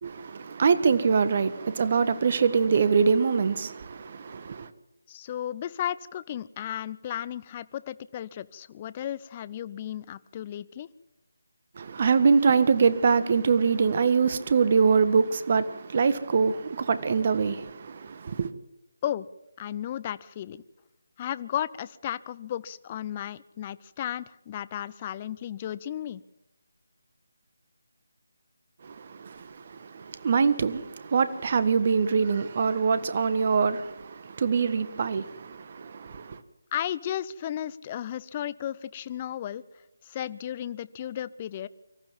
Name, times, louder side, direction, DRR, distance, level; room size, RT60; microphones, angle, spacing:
voice 1, 0.0-4.7 11.8-18.5 28.8-36.4, right 5 dB, 40° right, 1.5 m, -24 dB
voice 2, 5.1-10.9 19.0-19.3 19.6-20.6 21.2-26.2 36.7-39.6 40.0-41.7, left 11 dB, 25° left, 0.7 m, -34 dB
25.0 x 14.5 x 7.5 m
figure-of-eight pair, 160°, 0 cm